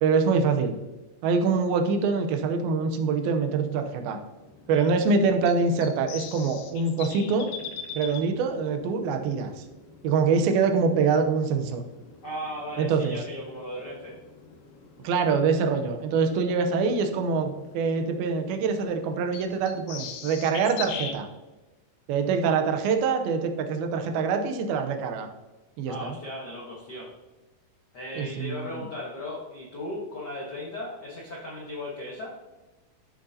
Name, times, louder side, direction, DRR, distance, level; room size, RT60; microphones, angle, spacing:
voice 1, 0.0-0.8 1.2-4.2 4.7-7.5 8.0-9.6 10.0-11.8 12.8-13.2 15.0-21.3 22.1-25.3 25.8-26.1 28.2-28.8, right 5 dB, 85° right, 5 dB, 2.7 m, -25 dB
sound 1, 3.4-21.1, left 7 dB, 75° left, 2.2 m, -44 dB
voice 2, 12.2-14.2 25.9-27.1 27.9-32.4, left 1 dB, 90° left, -4 dB, 0.9 m, -37 dB
12.5 x 6.4 x 2.8 m, 1.1 s
omnidirectional pair, 4.3 m